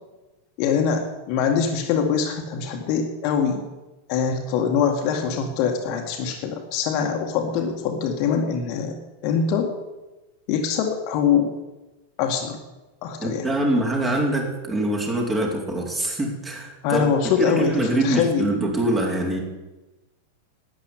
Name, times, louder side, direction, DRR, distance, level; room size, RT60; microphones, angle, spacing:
voice 1, 0.6-3.6 4.1-8.9 9.2-9.7 10.5-11.5 12.2-12.6 13.0-13.5 16.8-18.5, left 6 dB, 45° left, 3 dB, 2.0 m, -23 dB
voice 2, 13.2-17.1 17.4-19.4, right 1 dB, 15° right, 0 dB, 4.1 m, -24 dB
12.0 x 9.6 x 9.8 m, 1.1 s
figure-of-eight pair, 90°, 0 cm